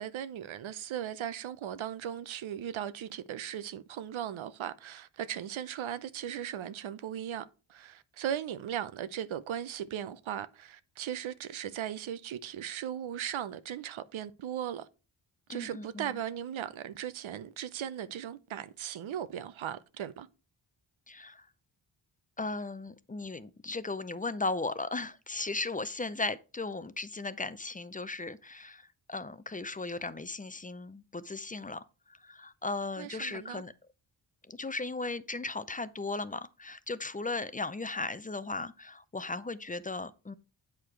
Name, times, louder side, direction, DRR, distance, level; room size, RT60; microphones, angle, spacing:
voice 1, 0.0-7.4 7.7-14.9 15.5-20.3 33.0-33.6, right 10 dB, 80° right, 0.7 m, -38 dB
voice 2, 15.5-16.2 21.1-21.5 22.4-33.7 34.5-40.3, left 3 dB, 20° left, 0.5 m, -37 dB
8.2 x 4.9 x 4.5 m
cardioid pair, 70°, 46 cm